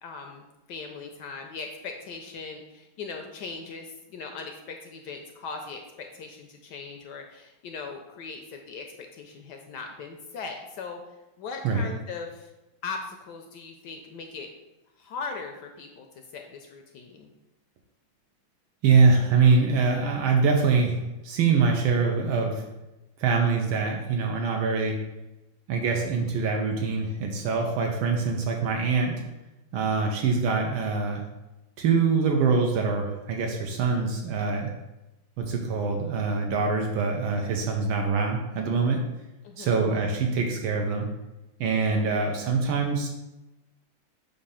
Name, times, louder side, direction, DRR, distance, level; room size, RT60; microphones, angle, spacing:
voice 1, 0.0-11.0 11.4-12.5 12.8-14.5 15.0-16.1 16.3-17.3 39.4-39.9, left 4 dB, 70° left, 3 dB, 1.0 m, -39 dB
voice 2, 18.8-22.6 23.2-25.0 25.7-29.2 29.7-31.2 31.8-34.7 35.4-39.0 39.6-41.1 41.6-43.1, right 4 dB, 85° right, 1 dB, 1.5 m, -24 dB
6.9 x 2.7 x 5.5 m, 1.0 s
omnidirectional pair, 2.2 m